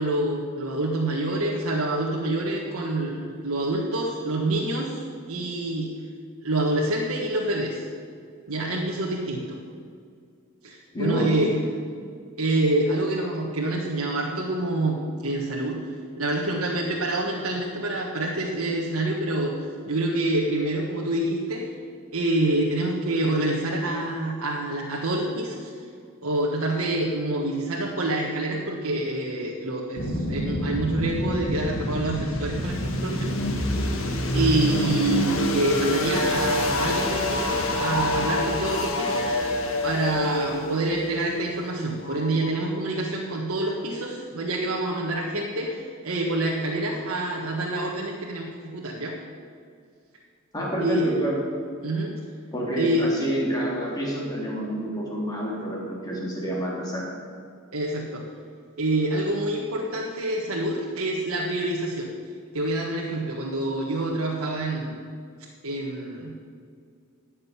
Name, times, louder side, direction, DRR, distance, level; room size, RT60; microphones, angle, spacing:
voice 1, 0.0-5.9 6.4-7.9 8.5-9.6 10.6-11.6 12.4-15.8 16.2-19.5 19.8-21.6 22.1-25.7 26.2-33.8 34.3-39.3 39.8-49.2 50.8-51.0 51.8-52.2 52.8-53.1 57.7-58.2 58.8-62.1 62.5-65.0 65.6-66.4, right 1 dB, 75° right, -3 dB, 1.5 m, -27 dB
voice 2, 10.9-11.3 50.5-51.4 52.5-57.0, right 1 dB, 15° left, -4 dB, 3.3 m, -28 dB
sound 1, 30.0-42.8, left 1 dB, 65° left, 1.7 m, -27 dB
15.0 x 6.6 x 9.7 m, 2.2 s
head